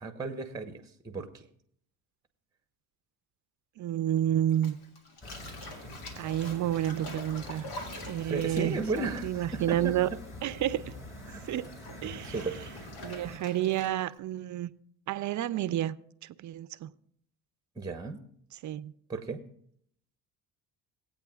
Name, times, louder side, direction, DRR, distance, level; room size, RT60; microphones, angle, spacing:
voice 1, 0.0-1.5 8.2-10.2 11.3-11.4 12.0-12.6 17.8-18.2 19.1-19.4, right 3 dB, 10° right, 0.9 m, -35 dB
voice 2, 3.8-4.8 6.2-7.7 8.0-10.1 10.4-10.9 11.4-11.7 12.0-12.4 13.0-14.7 15.1-16.0 16.2-16.9 18.6-18.9, right 12 dB, 45° right, 0.5 m, -30 dB
Bathtub (filling or washing), 4.5-10.3 10.6-14.2, left 2 dB, 75° left, 2.1 m, -46 dB
sound 1, 5.2-13.4, left 1 dB, 30° left, 4.0 m, -45 dB
19.0 x 8.5 x 2.4 m
supercardioid pair, 85°, 41 cm